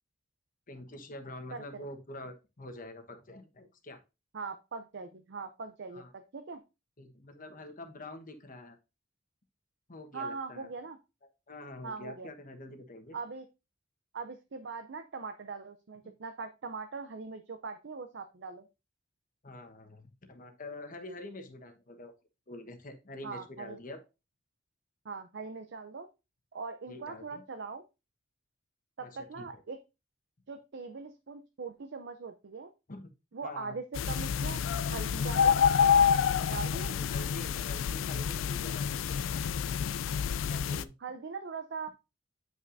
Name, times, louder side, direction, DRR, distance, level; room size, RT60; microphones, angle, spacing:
voice 1, 0.7-4.0 5.9-6.1 7.0-8.8 9.9-10.7 11.5-13.2 19.4-22.1 22.5-24.0 26.9-27.4 29.0-29.6 32.9-33.1 33.4-33.8 37.1-39.4 40.5-40.9, left 1 dB, 45° left, 6 dB, 1.2 m, -46 dB
voice 2, 4.3-6.6 10.1-11.0 11.8-12.3 13.1-13.5 14.1-18.7 23.2-23.8 25.0-26.1 26.5-27.8 29.0-29.8 30.5-32.7 33.3-34.6 34.9-35.6 36.5-37.1 41.0-41.9, right 4 dB, 65° right, 8 dB, 0.6 m, -41 dB
sound 1, 34.0-40.8, left 7 dB, 85° left, 0.3 m, -28 dB
9.2 x 5.7 x 2.6 m, 0.27 s
head